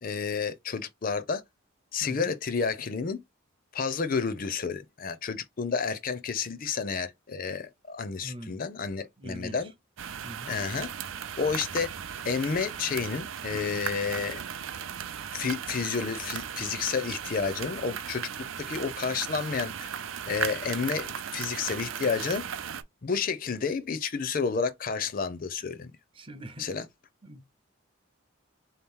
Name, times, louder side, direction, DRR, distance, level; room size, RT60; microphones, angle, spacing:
voice 1, 0.0-1.4 1.9-3.2 3.7-9.7 10.5-10.9 11.4-11.9 12.2-14.4 15.3-18.3 18.7-19.9 20.3-22.4 23.0-25.9 26.6-26.9, left 5 dB, 45° left, 0.5 m, -30 dB
voice 2, 2.0-2.3 8.2-8.6 9.2-9.7 10.2-10.5 26.1-26.7 27.2-27.4, right 1 dB, 25° right, 0.6 m, -42 dB
sound 1, 10.0-22.8, right 8 dB, 75° right, 0.5 m, -37 dB
3.7 x 2.8 x 3.6 m
head